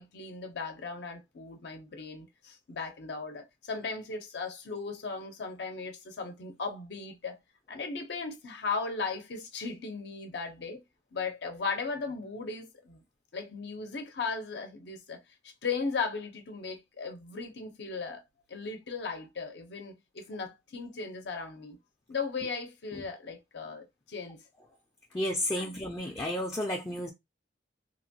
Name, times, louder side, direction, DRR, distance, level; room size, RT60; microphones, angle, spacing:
voice 1, 0.0-7.4 7.7-10.8 11.1-13.0 13.3-18.2 18.5-21.8 22.1-24.4 25.6-25.7, left 4 dB, 65° left, 0.6 m, -37 dB
voice 2, 25.1-27.1, left 1 dB, 15° left, 0.4 m, -32 dB
2.9 x 2.2 x 2.6 m
head